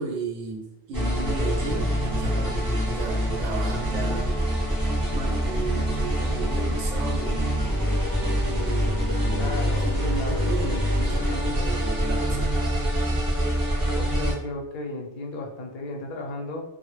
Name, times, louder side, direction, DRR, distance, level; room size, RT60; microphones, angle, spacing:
voice 1, 0.0-4.4 4.7-4.8 5.1-7.9 8.5-9.5 9.8-12.6, right 4 dB, 90° right, 1 dB, 0.9 m, -35 dB
sound 1, 0.9-14.3, equal, 25° right, 0.5 m, -25 dB
voice 2, 9.3-9.9 10.2-10.9 13.9-16.6, left 2 dB, 60° left, 1 dB, 0.6 m, -34 dB
2.1 x 2.0 x 3.0 m, 0.83 s
omnidirectional pair, 1.2 m